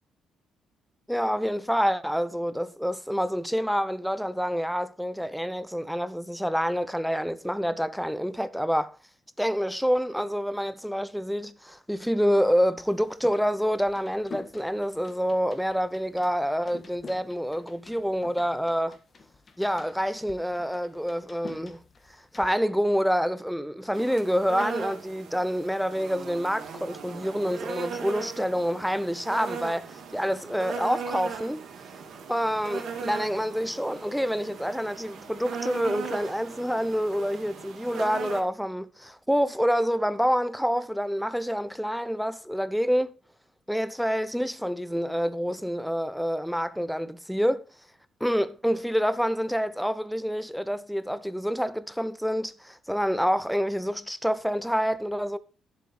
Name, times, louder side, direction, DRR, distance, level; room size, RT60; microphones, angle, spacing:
voice 1, 1.1-9.0 9.4-19.0 19.6-21.8 22.3-31.6 32.3-43.2 43.7-47.7 48.2-55.4, equal, ahead, 0.8 m, -27 dB
sound 1, 12.8-22.5, left 5 dB, 40° left, 1.6 m, -48 dB
sound 2, 23.9-38.4, right 6 dB, 70° right, 2.3 m, -38 dB
11.0 x 7.4 x 4.3 m
cardioid pair, 75°, 0 cm